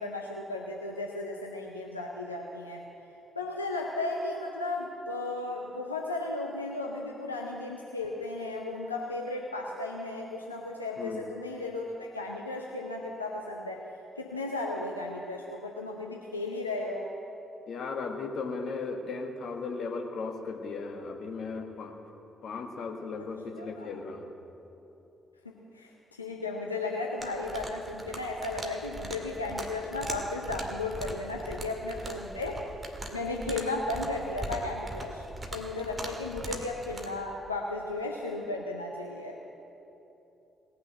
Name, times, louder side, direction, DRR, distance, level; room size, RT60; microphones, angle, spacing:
voice 1, 0.0-2.8 3.4-13.8 14.2-17.1 23.6-23.9 25.7-25.9 26.2-32.6 33.1-35.2 35.5-39.4, left 2 dB, 90° left, -1 dB, 0.7 m, -35 dB
voice 2, 11.0-11.3 17.7-22.0 22.4-24.3, left 4 dB, 55° left, 4 dB, 1.4 m, -36 dB
sound 1, 27.2-37.1, right 1 dB, 25° right, 2.2 m, -41 dB
19.0 x 6.7 x 8.9 m, 3.0 s
figure-of-eight pair, 40°, 0 cm